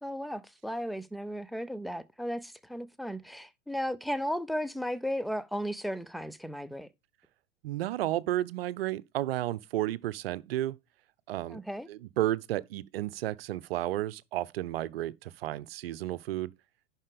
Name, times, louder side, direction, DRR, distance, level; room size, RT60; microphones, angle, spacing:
voice 1, 0.0-6.9 11.5-11.9, equal, ahead, 0.4 m, -35 dB
voice 2, 7.6-10.8 11.3-11.6 11.9-16.5, right 14 dB, 55° right, 0.7 m, -32 dB
11.0 x 4.6 x 5.0 m
figure-of-eight pair, 95°, 35 cm